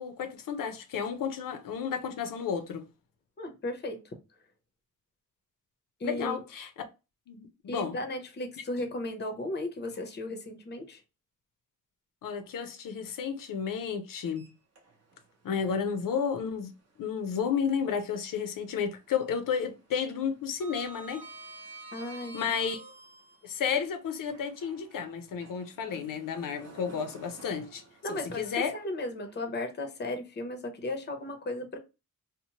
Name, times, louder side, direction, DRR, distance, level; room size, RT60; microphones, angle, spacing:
voice 1, 0.0-2.9 6.0-6.7 7.3-8.0 12.2-14.5 15.4-16.7 17.0-21.3 22.3-22.8 23.4-27.8 28.1-28.7, left 7 dB, 90° left, 0.6 m, -32 dB
voice 2, 3.4-4.2 6.0-6.4 7.7-11.0 21.9-22.5 28.0-31.8, left 1 dB, 35° left, 0.6 m, -35 dB
Sliding door, 14.3-15.3 15.6-15.8 17.5-18.5 18.8-19.2 19.4-23.5 24.2-29.4, right 2 dB, 50° right, 0.7 m, -50 dB
2.8 x 2.0 x 2.7 m
wide cardioid pair, 170°, 32 cm